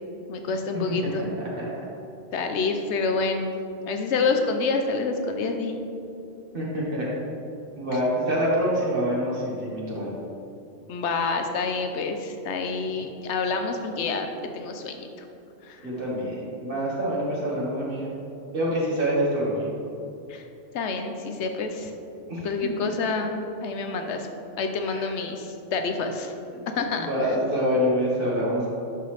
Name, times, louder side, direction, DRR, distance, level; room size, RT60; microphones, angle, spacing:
voice 1, 0.3-1.3 2.3-3.6 3.9-5.7 10.9-15.0 15.6-15.9 20.3-20.4 20.7-21.9 22.4-23.3 23.6-24.3 24.6-26.3 26.7-27.3, left 4 dB, 80° left, 5 dB, 0.9 m, -28 dB
voice 2, 0.9-1.7 6.5-7.1 7.8-10.1 15.8-18.1 18.5-19.7 22.3-22.5 22.8-22.9 24.8-25.1 27.0-28.7, equal, 50° right, -6 dB, 1.9 m, -26 dB
11.0 x 4.0 x 3.3 m, 2.7 s
omnidirectional pair, 1.2 m